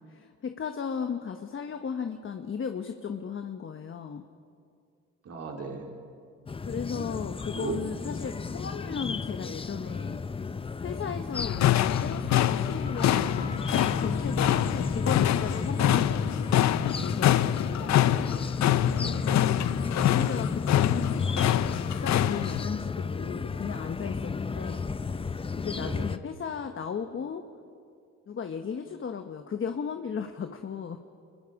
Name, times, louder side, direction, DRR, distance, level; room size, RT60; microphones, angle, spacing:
voice 1, 0.1-4.2 6.6-10.2 10.8-13.4 13.8-17.4 19.2-19.7 20.0-21.3 21.8-24.9 25.6-27.4 28.3-31.0, left 6 dB, 45° left, 7 dB, 1.1 m, -35 dB
voice 2, 5.2-5.9 7.5-7.8 17.6-18.5 18.8-19.4 25.7-26.1, right 4 dB, 55° right, 1 dB, 2.8 m, -38 dB
sound 1, 6.5-26.2, left 4 dB, 20° left, 0.5 m, -32 dB
sound 2, 11.3-22.6, left 13 dB, 65° left, 0.6 m, -26 dB
28.0 x 22.0 x 4.9 m, 2.3 s
cardioid pair, 90°, 30 cm